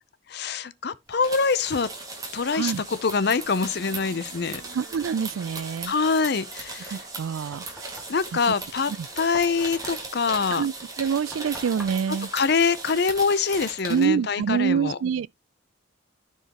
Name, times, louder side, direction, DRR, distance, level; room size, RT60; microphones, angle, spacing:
voice 1, 0.3-1.9 2.3-2.7 3.0-4.6 5.9-7.0 8.1-8.9 9.2-10.6 12.3-15.0, left 5 dB, 50° left, 0.5 m, -24 dB
sound 1, 1.1-14.0, right 3 dB, 20° right, 1.8 m, -38 dB
voice 2, 2.5-2.8 4.7-5.9 6.9-8.0 8.9-9.1 10.5-12.3 13.9-15.3, right 7 dB, 80° right, 0.3 m, -26 dB
sound 2, 3.2-6.2 8.2-8.9, right 2 dB, 60° right, 1.6 m, -52 dB
Knock, 7.1-13.4, equal, ahead, 1.9 m, -48 dB
13.0 x 4.7 x 2.9 m
head